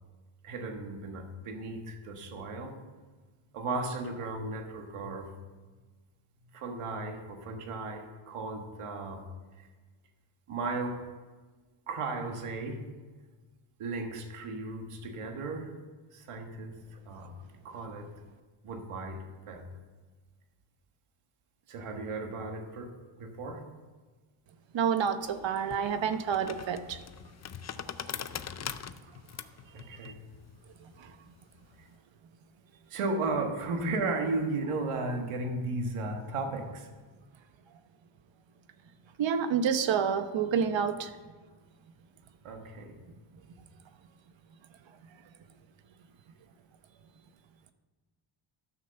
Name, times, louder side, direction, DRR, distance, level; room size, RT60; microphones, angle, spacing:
voice 1, 0.4-2.8 3.5-5.3 6.5-9.2 9.6-9.7 10.5-11.0 11.9-12.9 13.8-15.7 16.1-17.3 17.6-18.1 18.6-19.2 19.5-19.7 21.7-22.9 23.2-23.6 29.7-30.2 32.9-36.9 42.4-43.0, right 3 dB, 90° right, 4 dB, 1.6 m, -35 dB
voice 2, 24.7-27.0 30.0-30.1 31.0-31.1 39.2-41.1, right 7 dB, 60° right, 10 dB, 0.9 m, -28 dB
sound 1, 25.2-31.9, left 8 dB, 35° left, 0.5 m, -42 dB
13.0 x 6.1 x 6.8 m, 1.3 s
cardioid pair, 120°, 50 cm